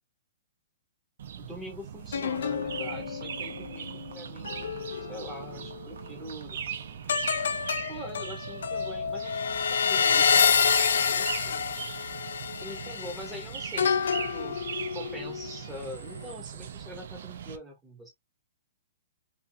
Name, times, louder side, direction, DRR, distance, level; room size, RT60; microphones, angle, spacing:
sound 1, 1.2-17.6, right 8 dB, 55° right, 0.4 m, -40 dB
voice 1, 1.4-6.6 7.9-11.6 12.6-14.6 14.9-18.1, equal, 5° right, 0.7 m, -44 dB
sound 2, 2.1-5.8 7.1-15.6 16.0-16.3, left 6 dB, 85° left, 0.4 m, -28 dB
sound 3, 2.3-7.7, right 5 dB, 80° right, 0.9 m, -53 dB
2.5 x 2.3 x 2.5 m
hypercardioid pair, 175°, 0 cm